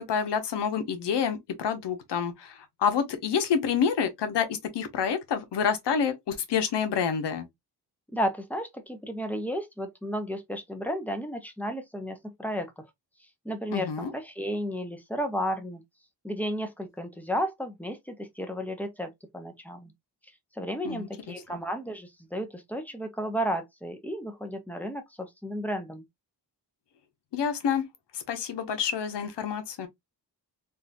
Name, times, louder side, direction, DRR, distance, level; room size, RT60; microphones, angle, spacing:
voice 1, 0.0-4.5 4.7-7.5 13.7-14.1 20.8-21.6 27.3-27.9 28.1-29.9, left 7 dB, 85° left, 0.8 m, -28 dB
voice 2, 8.1-12.8 13.4-15.8 16.2-19.9 20.6-26.0, equal, 5° left, 0.6 m, -33 dB
3.6 x 2.5 x 2.5 m
wide cardioid pair, 140°, 41 cm